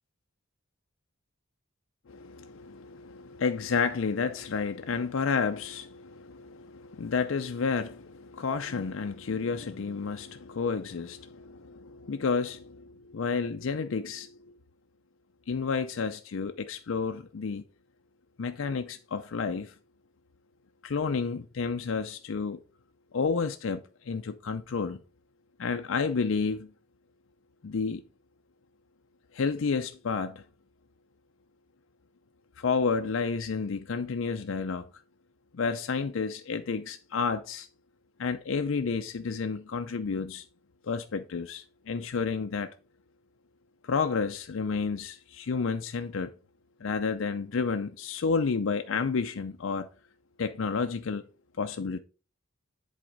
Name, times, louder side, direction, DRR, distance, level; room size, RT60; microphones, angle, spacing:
voice 1, 2.1-14.5 15.5-17.6 18.4-19.7 20.8-22.6 23.1-25.0 25.6-26.7 27.6-28.0 29.3-30.4 32.6-34.9 35.5-37.7 38.2-40.5 40.8-42.7 43.8-46.3 46.8-49.9 50.4-51.2 51.6-52.0, left 5 dB, 70° left, 0.5 m, -30 dB
7.7 x 4.1 x 4.9 m
head